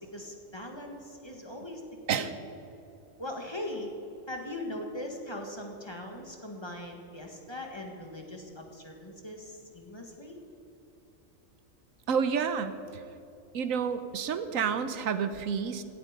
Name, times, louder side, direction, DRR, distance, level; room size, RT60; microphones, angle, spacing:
voice 1, 0.0-1.8 2.1-2.3 3.2-3.9 4.3-10.4, left 1 dB, 20° left, 1 dB, 1.8 m, -40 dB
voice 2, 12.1-13.0 13.5-15.8, right 6 dB, 85° right, 10 dB, 1.3 m, -29 dB
17.5 x 12.0 x 5.2 m, 2.9 s
omnidirectional pair, 1.4 m